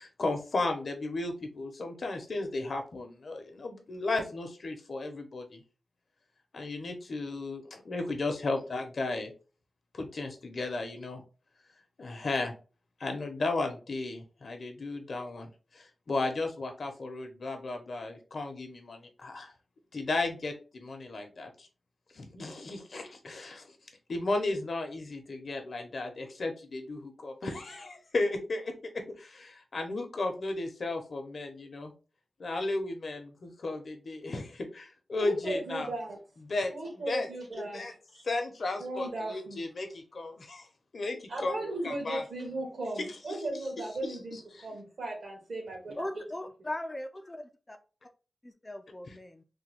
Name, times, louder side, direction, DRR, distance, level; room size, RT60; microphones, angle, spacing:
voice 1, 0.0-5.6 6.5-9.3 9.9-11.2 12.0-12.5 13.0-19.5 19.9-21.7 22.1-23.8 24.1-28.7 29.2-31.9 32.4-35.9 36.4-37.3 37.5-37.9 38.2-40.3 40.9-42.2 43.0-43.4 44.0-44.7 49.1-49.2, left 2 dB, 60° left, 5 dB, 0.7 m, -34 dB
voice 2, 35.2-36.2 36.7-37.8 38.1-38.2 38.8-39.6 41.3-46.2, right 2 dB, 65° right, 0 dB, 1.6 m, -36 dB
voice 3, 46.0-47.8 48.4-49.4, left 1 dB, 20° left, 6 dB, 0.3 m, -39 dB
3.4 x 2.2 x 3.3 m, 0.34 s
wide cardioid pair, 125°, 0 cm